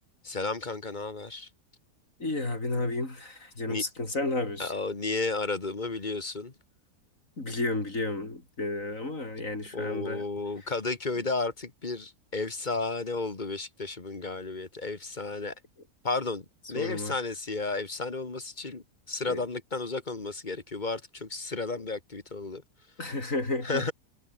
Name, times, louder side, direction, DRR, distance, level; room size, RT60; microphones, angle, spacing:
voice 1, 0.2-1.5 3.7-3.8 4.6-6.5 9.7-15.5 16.0-22.6 23.6-23.9, left 3 dB, 30° left, 2.2 m, -33 dB
voice 2, 2.2-4.7 7.4-10.2 16.8-17.1 19.2-19.4 23.0-23.9, left 2 dB, 55° left, 5.3 m, -32 dB
omnidirectional pair, 1.6 m